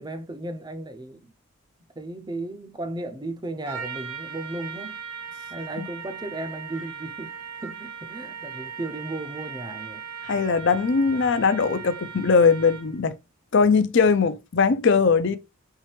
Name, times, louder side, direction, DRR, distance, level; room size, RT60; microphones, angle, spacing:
voice 1, 0.0-1.3 2.0-5.0 5.5-7.3 7.6-10.0, right 2 dB, 20° right, 0.5 m, -35 dB
Trumpet, 3.7-13.0, right 6 dB, 90° right, 0.8 m, -38 dB
voice 2, 10.2-13.1 13.5-15.4, left 5 dB, 55° left, 0.5 m, -20 dB
4.6 x 3.2 x 3.1 m
head